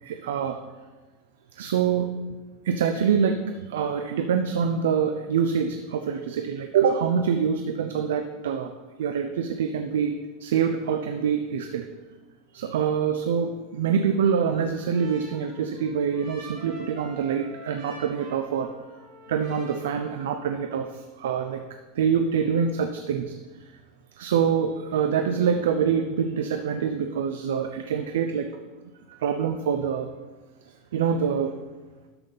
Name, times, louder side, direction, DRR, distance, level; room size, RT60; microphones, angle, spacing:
voice 1, 0.0-0.6 1.6-2.1 2.6-8.7 9.0-11.9 12.5-18.7 19.3-21.6 21.9-23.3 23.6-23.7 24.1-28.5 29.2-30.1 30.9-31.5, right 7 dB, 90° right, 7 dB, 0.6 m, -25 dB
Trumpet, 14.1-20.8, right 3 dB, 65° right, 2.4 m, -46 dB
12.5 x 5.4 x 4.0 m, 1.3 s
supercardioid pair, 130°, 0 cm